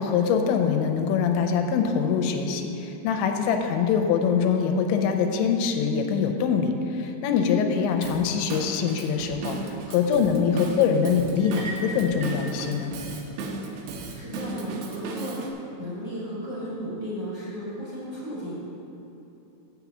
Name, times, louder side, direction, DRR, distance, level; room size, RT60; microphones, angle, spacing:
voice 1, 0.0-9.6 9.9-13.0, left 6 dB, 85° left, 5 dB, 2.9 m, -24 dB
Drum kit / Drum, 8.0-15.5, right 3 dB, 85° right, 2.1 m, -36 dB
sound 1, 11.4-12.5, right 2 dB, 65° right, 2.2 m, -37 dB
voice 2, 14.0-15.4 15.8-18.5, equal, 40° right, -10 dB, 1.7 m, -34 dB
7.7 x 6.0 x 7.0 m, 3.0 s
omnidirectional pair, 5.4 m